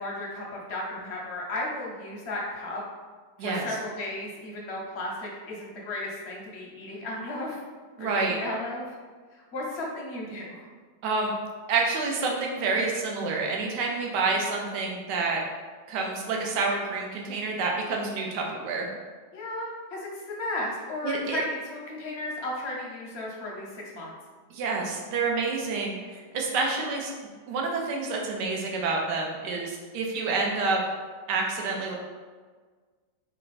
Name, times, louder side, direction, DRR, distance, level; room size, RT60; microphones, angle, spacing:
voice 1, 0.0-2.8 3.4-7.6 8.0-9.0 9.3-10.6 19.3-24.1, left 1 dB, 60° left, -3 dB, 0.7 m, -34 dB
voice 2, 8.0-8.4 11.0-11.3 11.7-15.4 15.9-18.9 21.0-21.4 24.5-27.1 27.5-30.8 31.3-31.9, right 4 dB, 85° right, 0 dB, 1.2 m, -28 dB
3.4 x 2.2 x 3.9 m, 1.5 s
omnidirectional pair, 1.8 m